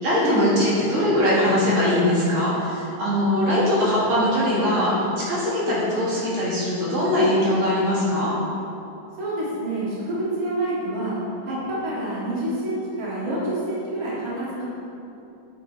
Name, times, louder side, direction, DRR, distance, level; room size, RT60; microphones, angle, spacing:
voice 1, 0.0-8.3 11.5-11.6, left 1 dB, 75° right, -8 dB, 3.0 m, -21 dB
voice 2, 9.2-11.1 11.5-11.6 11.8-14.6, right 1 dB, 45° right, -8 dB, 2.5 m, -27 dB
8.6 x 8.3 x 4.1 m, 2.8 s
omnidirectional pair, 2.3 m